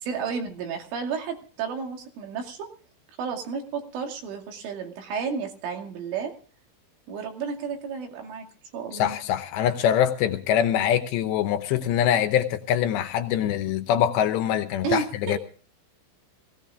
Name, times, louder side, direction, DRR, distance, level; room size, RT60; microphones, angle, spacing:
voice 1, 0.0-2.7 3.2-6.3 7.1-8.5 8.7-9.2 14.8-15.4, right 6 dB, 85° right, 5.0 m, -32 dB
voice 2, 8.9-15.4, left 10 dB, 75° left, 2.9 m, -24 dB
18.0 x 17.5 x 3.7 m
omnidirectional pair, 5.5 m